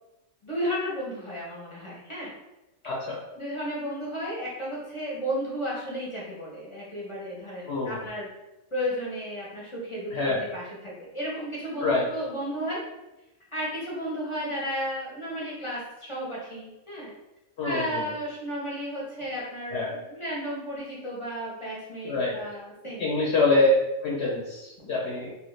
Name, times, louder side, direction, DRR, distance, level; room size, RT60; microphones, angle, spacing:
voice 1, 0.4-2.3 3.4-8.3 8.7-12.8 13.5-17.1 17.6-23.2, equal, 30° left, -6 dB, 0.6 m, -33 dB
voice 2, 2.8-3.2 7.7-8.0 10.1-10.4 11.8-12.1 17.6-18.1 19.7-20.0 22.0-22.3 23.0-23.7 24.0-25.3, left 2 dB, 65° left, -4 dB, 0.8 m, -25 dB
3.0 x 2.4 x 3.1 m, 0.99 s
omnidirectional pair, 1.4 m